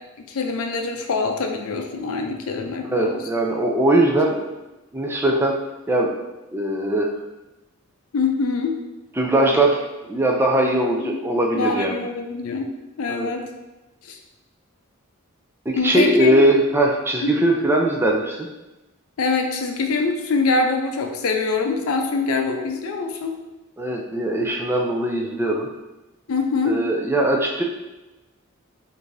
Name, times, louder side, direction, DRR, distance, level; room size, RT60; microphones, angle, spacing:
voice 1, 0.3-3.2 8.1-8.8 11.1-11.2 11.5-13.5 14.0-14.2 15.8-16.4 17.2-17.3 19.2-23.4 26.3-26.8, left 3 dB, 85° left, 3 dB, 0.5 m, -24 dB
voice 2, 2.8-4.5 4.9-5.6 5.9-6.1 6.5-7.1 9.2-11.9 13.1-13.3 15.7-18.5 23.8-25.7 26.7-27.6, right 1 dB, 10° right, 0 dB, 0.3 m, -20 dB
4.7 x 2.6 x 2.6 m, 1.1 s
head